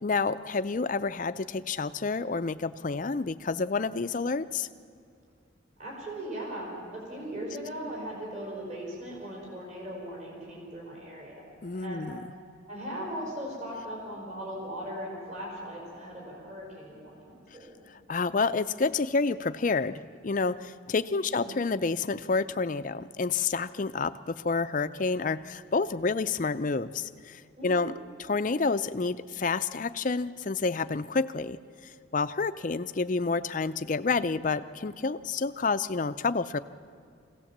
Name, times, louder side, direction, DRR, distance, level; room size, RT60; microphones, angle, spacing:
voice 1, 0.0-4.7 11.6-12.2 17.9-27.9 28.2-31.6 31.8-36.6, left 4 dB, 40° left, 12 dB, 0.5 m, -29 dB
voice 2, 5.8-11.5 11.8-12.1 12.7-17.8 21.1-21.5 27.6-27.9, equal, 40° right, -3 dB, 5.0 m, -39 dB
24.0 x 17.0 x 7.3 m, 2.4 s
head